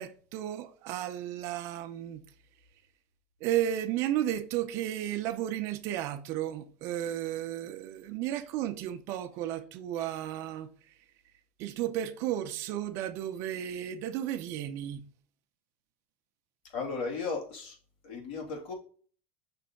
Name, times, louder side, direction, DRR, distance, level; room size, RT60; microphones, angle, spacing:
voice 1, 0.0-2.2 3.4-11.0 11.6-15.0, right 12 dB, 45° right, 0.6 m, -33 dB
voice 2, 16.7-17.8 18.0-18.7, left 4 dB, 60° left, 3.1 m, -35 dB
6.2 x 3.3 x 5.7 m
supercardioid pair, 160°, 6 cm